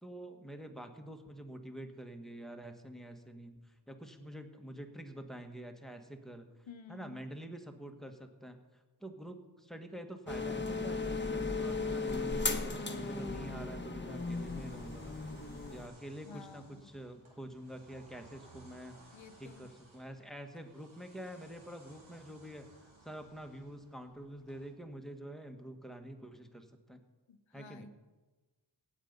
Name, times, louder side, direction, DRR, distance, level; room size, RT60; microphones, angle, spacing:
voice 1, 0.0-6.5 6.9-15.1 15.7-27.0 27.5-27.9, right 1 dB, ahead, 6 dB, 1.5 m, -47 dB
voice 2, 6.7-7.2 16.2-16.8 19.1-19.7 27.3-27.9, left 5 dB, 80° left, 8 dB, 1.1 m, -52 dB
sound 1, 10.3-15.9, left 3 dB, 25° left, 1.2 m, -36 dB
sound 2, 11.3-24.7, right 2 dB, 85° right, 2.5 m, -60 dB
16.5 x 8.5 x 5.4 m, 1.2 s
cardioid pair, 55°, 46 cm